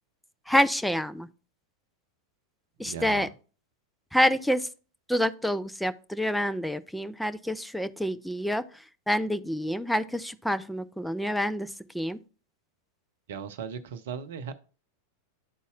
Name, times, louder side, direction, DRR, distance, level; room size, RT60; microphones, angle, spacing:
voice 1, 0.5-1.3 2.8-3.3 4.1-4.7 5.1-8.6 9.1-11.7 11.9-12.2, equal, ahead, 0.4 m, -27 dB
voice 2, 2.8-3.3 13.3-14.5, right 7 dB, 55° right, 0.6 m, -37 dB
11.5 x 4.0 x 2.4 m
figure-of-eight pair, 90°, 0 cm